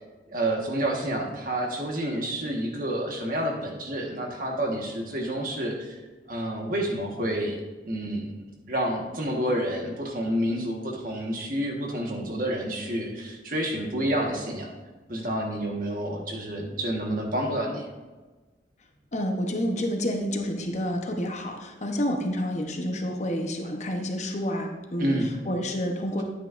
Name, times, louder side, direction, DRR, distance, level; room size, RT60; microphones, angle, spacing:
voice 1, 0.3-6.0 6.3-7.6 7.9-8.3 8.7-14.7 15.1-17.9 25.0-25.4, right 1 dB, 50° right, 1 dB, 1.4 m, -29 dB
voice 2, 19.1-25.2 25.5-26.2, equal, 40° left, 3 dB, 0.9 m, -29 dB
10.0 x 9.2 x 2.5 m, 1.2 s
head